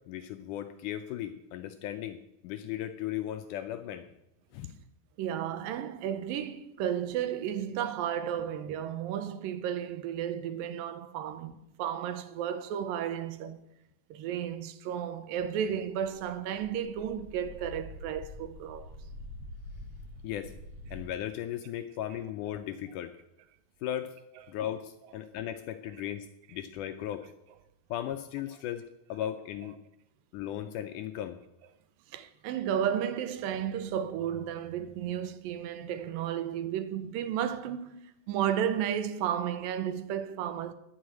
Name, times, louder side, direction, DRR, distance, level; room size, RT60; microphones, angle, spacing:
voice 1, 0.1-4.1 4.5-4.7 20.2-20.5 20.9-23.1 23.8-24.1 24.5-27.3 27.9-29.8 30.3-31.4, left 11 dB, 80° left, 1.9 m, -36 dB
voice 2, 5.2-13.6 14.1-18.9 32.1-38.0 38.3-40.7, right 9 dB, 90° right, 2.4 m, -33 dB
sound 1, 16.0-21.1, left 1 dB, 60° right, 1.0 m, -46 dB
11.0 x 6.4 x 8.1 m
omnidirectional pair, 4.1 m